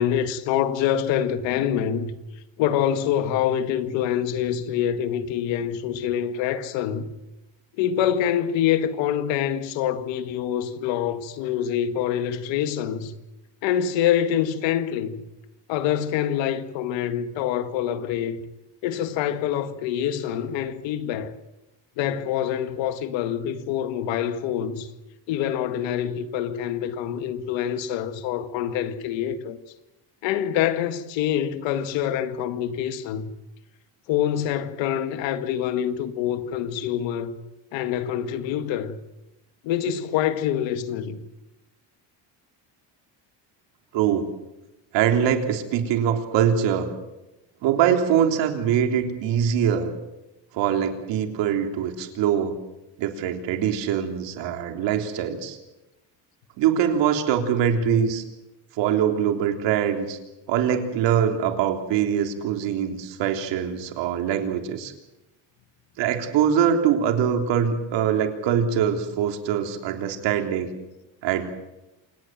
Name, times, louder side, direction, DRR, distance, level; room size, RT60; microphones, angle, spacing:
voice 1, 0.0-2.1 2.6-7.1 7.8-13.1 13.6-15.2 15.7-18.4 18.8-21.3 22.0-24.9 25.3-29.6 30.2-33.3 34.1-37.4 37.7-39.0 39.6-41.2, left 10 dB, 90° left, 2.0 m, -25 dB
voice 2, 43.9-44.3 44.9-46.9 47.6-49.9 50.5-52.5 53.0-55.6 56.6-58.2 58.8-60.2 60.5-64.9 66.0-70.7 71.2-71.5, right 8 dB, 75° right, 3.5 m, -23 dB
27.5 x 18.5 x 7.6 m
cardioid pair, 150°, 44 cm